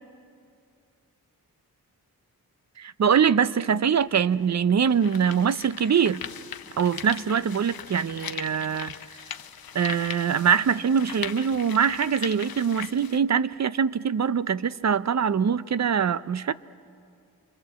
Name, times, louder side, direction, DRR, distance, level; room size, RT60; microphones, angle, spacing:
voice 1, 2.8-6.2 6.8-9.0 9.7-16.5, right 7 dB, 45° right, 0.6 m, -23 dB
sound 1, 4.0-4.1 4.7-13.2, left 8 dB, 70° left, 0.9 m, -39 dB
27.5 x 23.5 x 8.0 m
wide cardioid pair, 100°, 37 cm